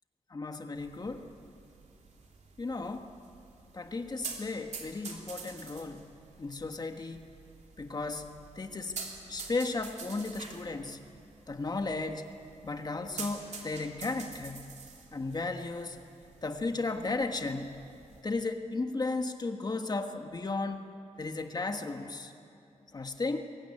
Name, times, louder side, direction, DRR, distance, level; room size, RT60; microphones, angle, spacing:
voice 1, 0.3-1.3 2.6-3.1 3.7-6.0 6.4-7.3 7.8-8.3 8.5-9.0 9.3-11.0 11.5-12.3 12.6-14.6 15.1-16.0 16.4-17.7 18.2-22.3 22.9-23.4, left 3 dB, 35° left, 6 dB, 1.4 m, -35 dB
sound 1, 0.8-18.2, right 4 dB, 70° right, 3.0 m, -48 dB
23.5 x 16.5 x 9.7 m, 2.7 s
wide cardioid pair, 145°, 12 cm